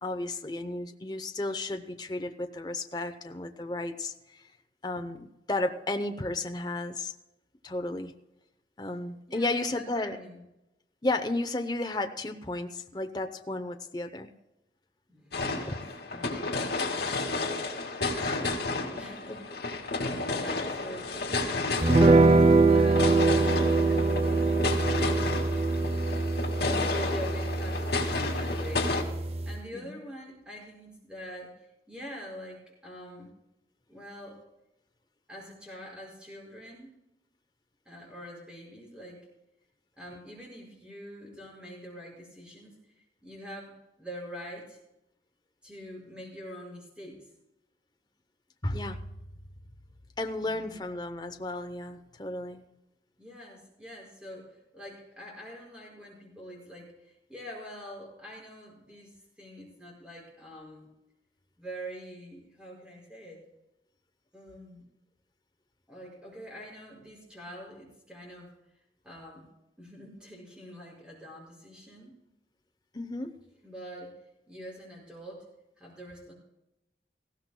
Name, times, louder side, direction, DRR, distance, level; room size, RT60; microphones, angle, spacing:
voice 1, 0.0-4.4 4.8-7.1 7.6-8.1 8.8-10.2 11.0-14.3 15.7-15.8 18.2-18.6 19.3-19.4 20.1-20.2 29.7-30.0 48.6-49.1 50.2-52.6 72.9-73.4, left 2 dB, 25° left, 6 dB, 0.7 m, -33 dB
voice 2, 9.3-10.4 15.1-16.5 16.8-17.7 18.2-19.6 20.3-23.3 26.6-33.3 33.9-34.4 35.3-36.9 37.9-39.3 40.0-44.8 45.6-47.3 50.4-50.9 53.2-60.9 61.6-63.5 64.3-64.8 65.9-68.5 69.0-69.5 69.8-72.2 73.6-75.5 75.8-76.3, equal, 5° right, -2 dB, 5.5 m, -45 dB
sound 1, 15.3-29.0, left 3 dB, 75° left, 2.2 m, -32 dB
sound 2, 21.8-29.6, right 3 dB, 35° right, 0.5 m, -24 dB
19.0 x 15.5 x 2.2 m, 0.91 s
head